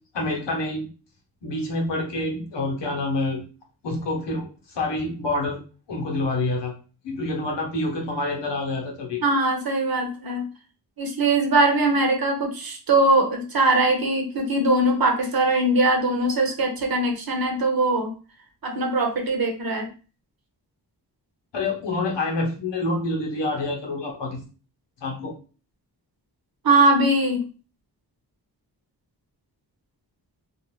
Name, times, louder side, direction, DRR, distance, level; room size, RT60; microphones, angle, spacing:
voice 1, 0.1-0.9 1.4-3.4 3.8-5.6 5.9-6.7 7.0-9.2 21.5-24.4 25.0-25.3, left 2 dB, 80° left, 0 dB, 1.0 m, -27 dB
voice 2, 9.2-10.5 11.0-18.1 18.6-19.9 26.6-27.4, right 2 dB, 55° right, 1 dB, 1.0 m, -21 dB
2.5 x 2.4 x 3.1 m, 0.36 s
cardioid pair, 45°, 42 cm